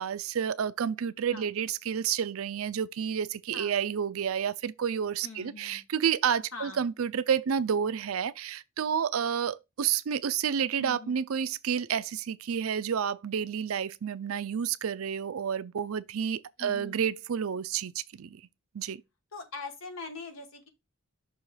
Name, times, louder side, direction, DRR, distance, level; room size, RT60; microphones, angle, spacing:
voice 1, 0.0-18.4 18.7-19.0, right 7 dB, 85° right, 0.5 m, -30 dB
voice 2, 5.2-5.8 6.5-6.8 10.8-11.2 16.6-17.0 19.3-20.7, left 3 dB, 75° left, 1.4 m, -42 dB
6.3 x 3.0 x 5.6 m
head